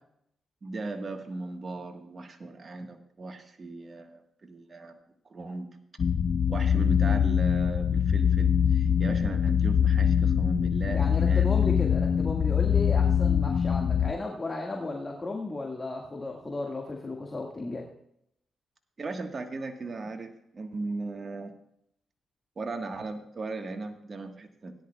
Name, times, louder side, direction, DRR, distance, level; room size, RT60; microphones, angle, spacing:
voice 1, 0.6-5.0 5.3-5.7 6.5-11.5 19.0-21.5 22.6-24.7, right 3 dB, 45° right, 5 dB, 1.5 m, -37 dB
sound 1, 6.0-14.1, left 8 dB, 55° left, 0.4 m, -23 dB
voice 2, 10.9-17.8, left 2 dB, 30° left, -1 dB, 1.9 m, -34 dB
17.5 x 10.5 x 2.4 m, 0.75 s
cardioid pair, 65°, 0 cm